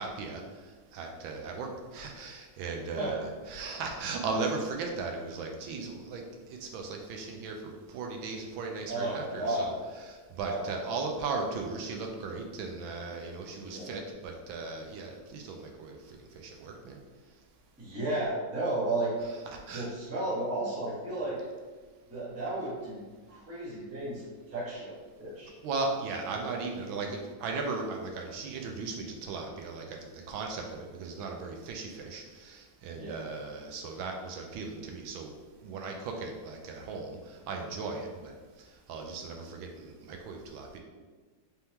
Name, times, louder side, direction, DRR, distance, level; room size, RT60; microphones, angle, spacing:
voice 1, 0.0-17.0 19.2-19.9 25.6-38.3 38.6-40.8, right 3 dB, 80° right, 2 dB, 1.4 m, -37 dB
voice 2, 8.9-9.7 10.4-10.7 13.6-13.9 17.8-19.1 19.7-21.4 22.1-23.0 23.3-25.5 32.9-33.2, right 2 dB, 10° right, -7 dB, 0.7 m, -33 dB
4.4 x 3.5 x 2.8 m, 1.4 s
omnidirectional pair, 2.1 m